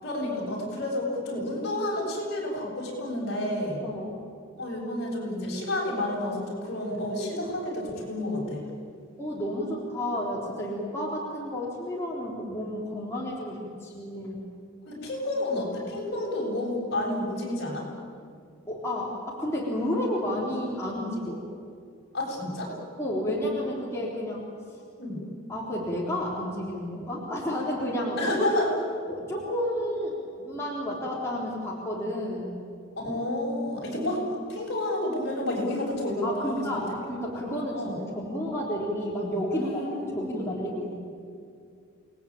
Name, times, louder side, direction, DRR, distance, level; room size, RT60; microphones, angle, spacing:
voice 1, 0.0-3.8 4.6-8.6 14.9-17.9 22.1-22.7 25.0-25.2 28.2-28.7 33.0-36.8 37.7-38.0 39.5-40.5, left 1 dB, 55° left, -3 dB, 7.8 m, -30 dB
voice 2, 3.8-4.1 9.2-14.4 18.7-21.4 23.0-24.5 25.5-28.3 29.1-32.6 36.2-39.8 40.1-40.9, left 1 dB, 15° left, -5 dB, 3.7 m, -31 dB
28.0 x 19.5 x 9.0 m, 2.3 s
head